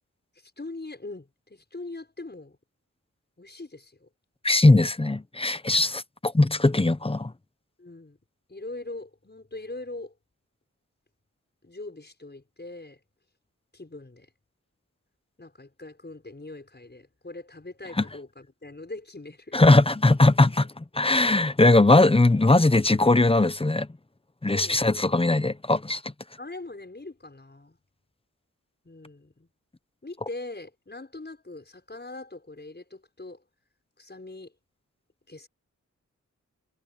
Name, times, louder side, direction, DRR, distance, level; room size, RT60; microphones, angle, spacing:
voice 1, 0.4-2.6 3.4-4.1 7.8-8.2 8.5-10.1 11.6-13.0 13.7-14.3 15.4-19.6 24.5-24.9 26.4-27.8 28.8-29.5 30.0-33.4 34.0-34.5 35.3-35.5, left 2 dB, 35° left, 6.7 m, -41 dB
voice 2, 4.4-7.3 18.0-18.1 19.5-23.9 24.4-26.0, left 2 dB, 20° left, 0.8 m, -20 dB
wide cardioid pair, 80°, 31 cm